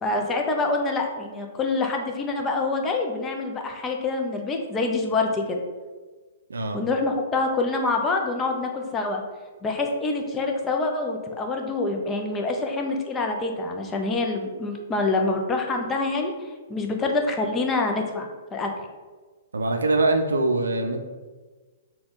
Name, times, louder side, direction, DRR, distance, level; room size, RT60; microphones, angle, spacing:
voice 1, 0.0-5.6 6.7-9.2 9.6-18.7, left 3 dB, 20° left, 2 dB, 0.5 m, -26 dB
voice 2, 19.5-21.0, right 2 dB, 75° right, 5 dB, 0.4 m, -23 dB
3.5 x 2.3 x 3.9 m, 1.3 s
figure-of-eight pair, 115°, 0 cm